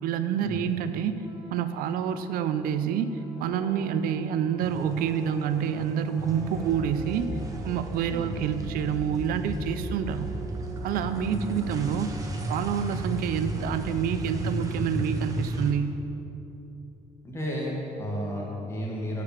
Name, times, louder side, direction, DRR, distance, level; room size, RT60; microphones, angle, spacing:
voice 1, 0.0-7.3 7.6-10.3 10.8-12.1 12.5-15.9, right 8 dB, 75° right, 10 dB, 0.5 m, -28 dB
sound 1, 1.1-14.9, right 2 dB, 5° right, 1.2 m, -46 dB
sound 2, 4.6-5.4 5.6-15.7, right 1 dB, 20° right, 0.9 m, -34 dB
voice 2, 8.1-8.4 11.3-11.6 17.2-19.2, equal, 15° left, -4 dB, 1.6 m, -32 dB
7.7 x 4.9 x 7.2 m, 2.9 s
cardioid pair, 130°, 15 cm